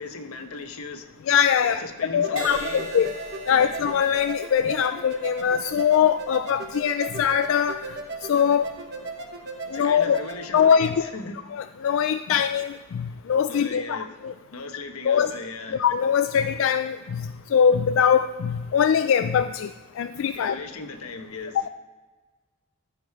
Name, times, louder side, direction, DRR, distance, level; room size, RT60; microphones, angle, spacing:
voice 1, 0.0-1.2 1.6-2.9 3.5-3.7 9.7-11.4 13.5-14.1 14.5-15.8 20.3-21.7, left 3 dB, 90° left, 6 dB, 1.0 m, -37 dB
voice 2, 1.3-1.8 2.1-3.1 3.5-7.8 8.2-8.7 9.7-10.2 10.5-11.1 11.5-14.0 14.2-14.3 15.0-15.3 15.7-20.6, left 7 dB, 65° left, 9 dB, 0.3 m, -22 dB
sound 1, 2.2-11.0, right 3 dB, 50° right, 1.2 m, -37 dB
Crash cymbal, 2.4-10.0 10.7-11.0, equal, 70° right, 2.0 m, -42 dB
14.0 x 5.1 x 4.7 m, 1.4 s
head